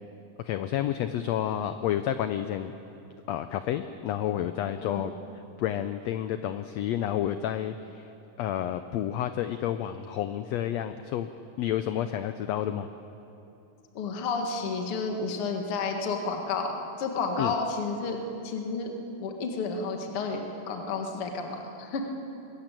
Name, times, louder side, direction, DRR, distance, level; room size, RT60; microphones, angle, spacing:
voice 1, 0.4-2.7 3.3-5.1 5.6-8.1 8.4-11.3 11.6-12.9 17.4-17.5, left 11 dB, 90° left, 10 dB, 1.5 m, -30 dB
voice 2, 4.8-5.1 13.9-18.2 18.4-18.9 19.2-22.0, left 4 dB, 50° left, 3 dB, 2.3 m, -31 dB
21.5 x 15.0 x 8.9 m, 2.9 s
omnidirectional pair, 3.7 m